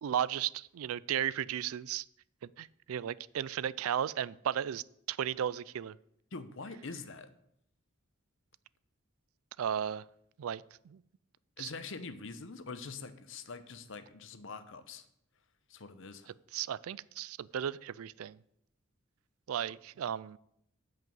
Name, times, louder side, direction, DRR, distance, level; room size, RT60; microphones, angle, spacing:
voice 1, 0.0-2.0 2.6-6.0 9.6-10.0 10.4-11.0 11.6-11.7 16.5-18.4 19.5-20.4, right 9 dB, 75° right, 20 dB, 0.3 m, -35 dB
voice 2, 6.3-7.3 11.6-15.1 15.7-16.3, left 4 dB, 60° left, 11 dB, 0.8 m, -44 dB
9.0 x 5.5 x 7.9 m, 0.74 s
head